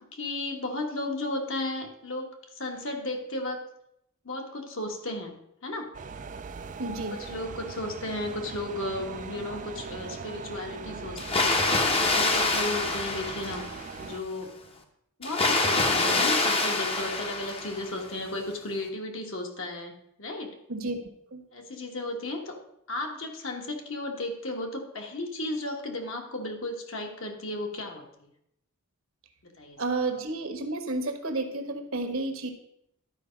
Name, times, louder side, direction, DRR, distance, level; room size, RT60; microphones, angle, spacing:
voice 1, 0.1-3.6 4.2-5.4 5.6-5.9 7.1-14.5 15.2-19.9 20.2-20.6 21.5-22.6 22.9-28.0 29.6-29.8, left 2 dB, 60° left, 3 dB, 1.4 m, -34 dB
sound 1, 5.9-14.2, right 5 dB, 35° right, 0.3 m, -40 dB
voice 2, 6.8-7.2 20.7-21.0 21.3-21.4 29.8-32.5, right 2 dB, 65° right, 5 dB, 1.2 m, -31 dB
Water, 11.2-14.0 15.2-18.0, left 3 dB, 25° left, 0.8 m, -26 dB
11.5 x 4.8 x 5.1 m, 0.77 s
head